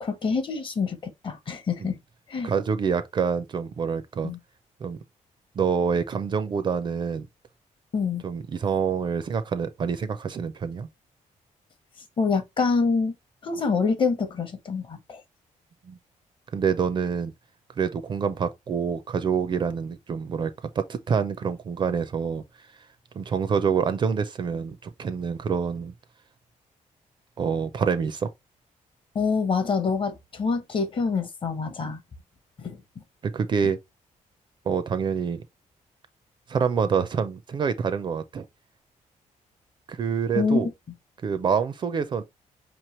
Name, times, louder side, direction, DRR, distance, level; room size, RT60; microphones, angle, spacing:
voice 1, 0.0-2.0 2.3-2.5 4.2-4.4 7.9-8.2 12.2-13.1 13.4-15.2 29.1-32.0 32.6-32.8 40.3-40.7, left 4 dB, 40° left, 0.8 m, -26 dB
voice 2, 2.4-4.3 4.8-5.0 5.6-7.3 8.2-10.9 15.9-16.0 16.5-17.3 17.8-22.4 23.2-25.9 27.4-28.3 31.8-31.9 33.2-33.8 34.7-35.4 36.5-38.5 39.9-40.7 41.2-42.2, right 6 dB, 35° right, 0.4 m, -26 dB
5.2 x 3.0 x 2.9 m
wide cardioid pair, 170°, 14 cm